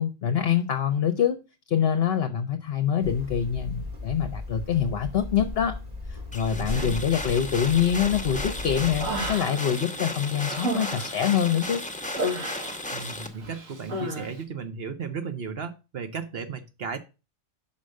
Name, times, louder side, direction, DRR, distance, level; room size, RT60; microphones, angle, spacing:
voice 1, 0.0-1.4 1.7-5.7 6.1-11.8, left 8 dB, 55° left, 0.9 m, -25 dB
Hammer, 3.0-9.4, left 2 dB, 30° right, 1.4 m, -36 dB
sound 1, 6.3-13.3, left 1 dB, 5° left, 0.7 m, -35 dB
voice 2, 6.5-6.9 12.9-17.0, right 6 dB, 55° right, 1.0 m, -35 dB
Human voice, 8.7-9.8 10.2-13.1 13.4-14.3, right 1 dB, 75° right, 1.9 m, -33 dB
5.7 x 5.1 x 6.4 m
omnidirectional pair, 1.4 m